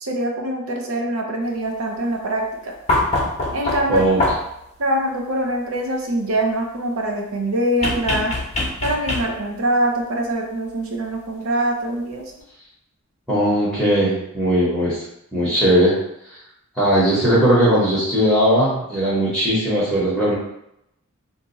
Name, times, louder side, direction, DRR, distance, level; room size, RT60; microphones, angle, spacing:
voice 1, 0.0-2.8 3.5-4.1 4.8-8.3 8.8-12.2, right 1 dB, 70° right, 1 dB, 0.7 m, -23 dB
sound 1, 2.9-4.6 7.8-9.6 11.1-11.2, left 2 dB, 30° left, 0.8 m, -23 dB
voice 2, 3.9-4.2 13.3-15.0 15.3-15.9 16.8-20.3, equal, ahead, -10 dB, 1.0 m, -18 dB
2.6 x 2.4 x 4.0 m, 0.82 s
head